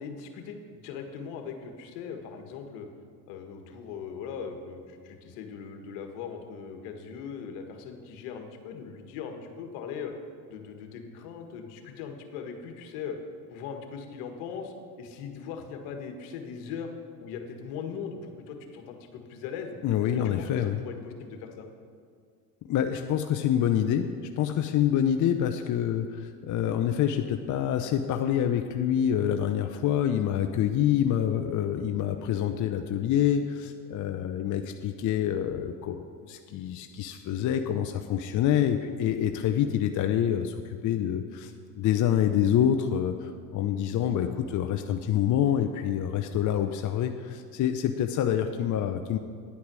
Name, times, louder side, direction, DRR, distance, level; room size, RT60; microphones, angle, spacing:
voice 1, 0.0-2.9 3.3-10.1 10.5-13.1 13.5-16.9 17.2-19.8 20.0-21.7 32.2-32.4, left 6 dB, 70° left, 5 dB, 1.6 m, -40 dB
voice 2, 19.8-20.8 22.7-24.1 24.3-40.5 40.8-49.2, left 10 dB, 40° left, 6 dB, 0.7 m, -26 dB
9.7 x 8.6 x 6.2 m, 2.2 s
supercardioid pair, 85°, 45 cm